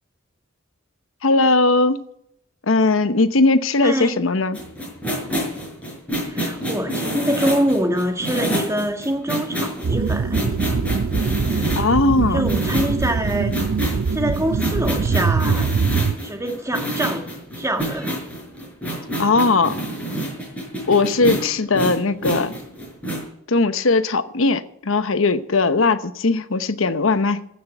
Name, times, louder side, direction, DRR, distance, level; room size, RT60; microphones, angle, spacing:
voice 1, 1.2-2.0 2.7-4.6 11.8-12.4 19.2-19.7 20.9-22.5 23.5-27.5, left 3 dB, 80° left, 12 dB, 1.0 m, -19 dB
voice 2, 3.8-4.2 6.2-10.6 11.4-11.7 12.3-13.6 14.1-15.7 16.2-17.3 17.6-18.1, right 1 dB, 15° right, 4 dB, 1.9 m, -25 dB
sound 1, 4.5-11.9 12.4-23.3, right 1 dB, 5° left, 5.5 m, -28 dB
sound 2, 9.8-16.1, right 5 dB, 85° right, 0.5 m, -23 dB
15.5 x 6.7 x 8.2 m, 0.73 s
head